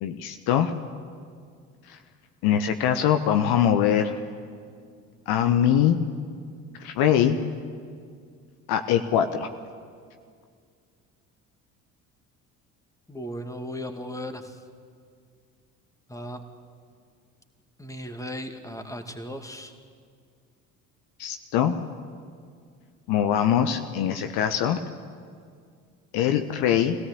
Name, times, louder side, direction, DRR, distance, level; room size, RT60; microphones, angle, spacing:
voice 1, 0.0-0.7 2.4-4.2 5.3-6.0 6.8-7.4 8.7-9.5 21.2-21.7 23.1-24.8 26.1-27.0, left 9 dB, 55° left, 8 dB, 1.2 m, -22 dB
voice 2, 13.1-14.6 16.1-16.4 17.8-19.7, equal, 5° left, 6 dB, 2.3 m, -36 dB
24.5 x 17.0 x 8.6 m, 2.2 s
figure-of-eight pair, 55°, 45 cm